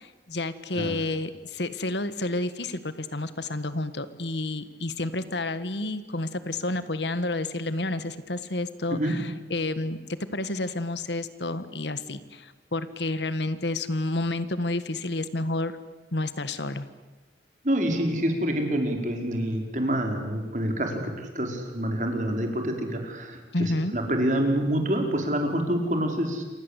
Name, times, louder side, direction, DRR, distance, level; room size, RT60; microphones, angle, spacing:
voice 1, 0.0-10.0 10.3-15.8 16.1-16.9 23.5-23.9, left 2 dB, 80° left, 13 dB, 1.7 m, -30 dB
voice 2, 17.6-26.4, right 1 dB, 45° right, 3 dB, 4.9 m, -27 dB
28.5 x 25.5 x 8.3 m, 1.2 s
head